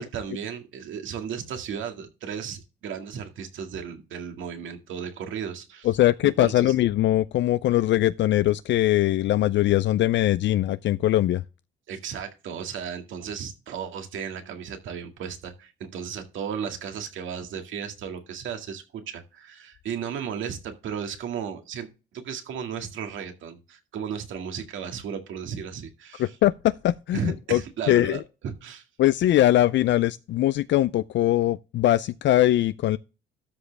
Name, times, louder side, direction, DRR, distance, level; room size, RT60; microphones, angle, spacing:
voice 1, 0.0-5.9 6.2-6.7 11.9-21.9 22.1-26.4 27.1-28.8, right 7 dB, 75° right, 2.1 m, -35 dB
voice 2, 5.8-11.4 26.2-28.2 29.0-33.0, left 14 dB, 65° left, 0.4 m, -21 dB
13.0 x 5.1 x 3.4 m
cardioid pair, 90°, 20 cm